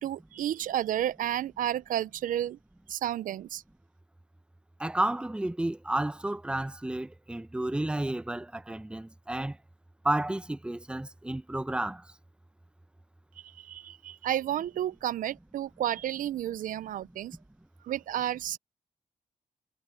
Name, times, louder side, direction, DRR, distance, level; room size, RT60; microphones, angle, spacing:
voice 1, 0.0-2.6 2.9-3.6 13.4-17.4 17.8-18.6, right 11 dB, 75° right, 0.4 m, -31 dB
voice 2, 4.8-9.6 10.0-12.0, right 1 dB, 5° right, 0.7 m, -31 dB
cardioid pair, 95°, 14 cm